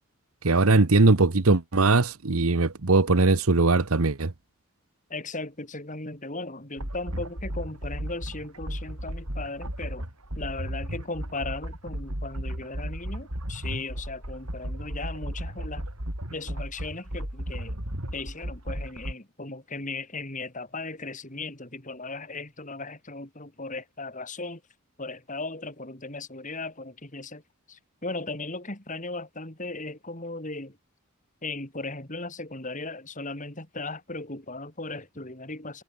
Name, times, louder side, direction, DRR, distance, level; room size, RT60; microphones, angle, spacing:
voice 1, 0.4-4.3, right 3 dB, 75° right, 1.1 m, -20 dB
voice 2, 5.1-10.1 10.4-15.8 16.3-17.8 18.1-24.6 25.0-27.4 27.7-30.8 31.4-35.8, left 3 dB, 35° left, 3.6 m, -37 dB
sound 1, 6.8-19.1, equal, 90° right, 6.7 m, -34 dB
head